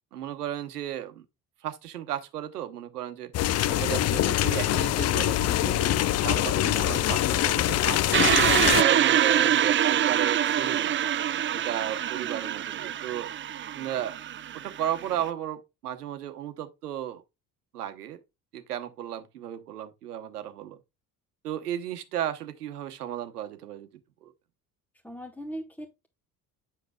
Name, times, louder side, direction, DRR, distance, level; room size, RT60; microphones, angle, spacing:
voice 1, 0.1-1.3 1.6-3.3 3.7-8.2 8.6-10.9 11.5-13.3 13.7-14.2 14.5-17.2 17.7-18.2 18.5-20.8 21.4-23.9 24.2-24.3, right 11 dB, 90° right, 1.0 m, -34 dB
sound 1, 3.3-8.8, left 13 dB, 35° left, 0.4 m, -24 dB
sound 2, 8.1-15.2, right 10 dB, 25° right, 0.5 m, -25 dB
voice 2, 8.6-8.9 25.0-26.1, equal, 5° left, 1.2 m, -39 dB
8.0 x 6.5 x 2.2 m
hypercardioid pair, 55°, 45 cm